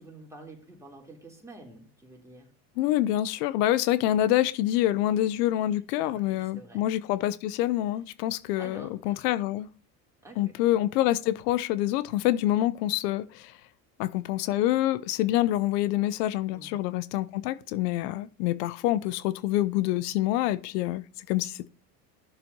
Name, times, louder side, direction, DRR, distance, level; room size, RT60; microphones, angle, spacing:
voice 1, 0.0-2.5 6.0-6.9 8.6-9.2 10.2-10.5 16.5-16.8, right 2 dB, 5° right, 3.5 m, -48 dB
voice 2, 2.8-9.7 10.4-13.6 14.0-21.7, left 14 dB, 70° left, 0.7 m, -26 dB
14.0 x 6.9 x 2.8 m
hypercardioid pair, 90°, 49 cm